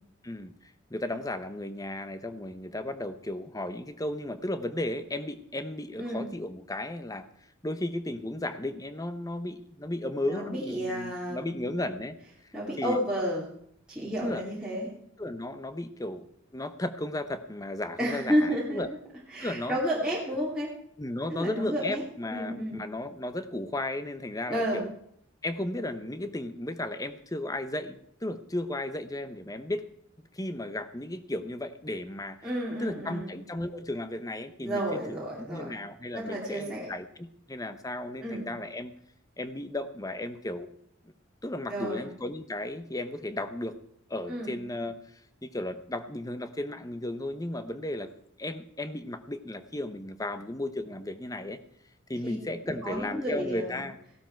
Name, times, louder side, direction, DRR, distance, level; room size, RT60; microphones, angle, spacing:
voice 1, 0.2-7.3 7.6-12.2 12.8-13.0 14.2-14.5 15.2-16.3 16.5-18.9 19.4-19.8 21.0-24.9 25.4-29.9 30.3-32.4 32.8-35.0 35.4-38.9 39.4-40.7 41.4-43.8 44.1-45.0 45.4-48.1 48.4-51.6 52.1-54.0, left 1 dB, 20° left, 11 dB, 0.9 m, -34 dB
voice 2, 10.2-11.8 12.5-13.4 13.9-14.9 18.0-18.8 19.3-20.7 21.3-22.0 22.3-22.8 24.5-24.8 32.4-33.3 34.6-35.7 36.1-36.9 38.2-38.5 41.7-42.1 44.3-44.6 52.2-52.4 52.8-53.8, equal, 5° right, -7 dB, 2.7 m, -31 dB
16.0 x 12.5 x 4.5 m, 0.70 s
head